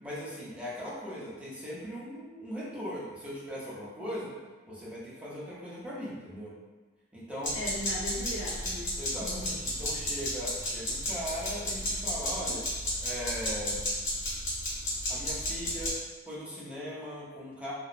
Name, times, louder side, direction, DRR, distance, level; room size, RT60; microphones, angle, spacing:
voice 1, 0.0-4.3 4.7-6.5 7.1-7.6 9.0-12.7 13.0-13.8 15.1-16.0 16.3-17.7, equal, 5° right, -8 dB, 0.5 m, -39 dB
sound 1, 7.4-15.9, left 1 dB, 45° left, 1.0 m, -33 dB
voice 2, 7.5-9.6, left 1 dB, 85° left, -5 dB, 0.7 m, -38 dB
3.0 x 2.0 x 2.4 m, 1.3 s
head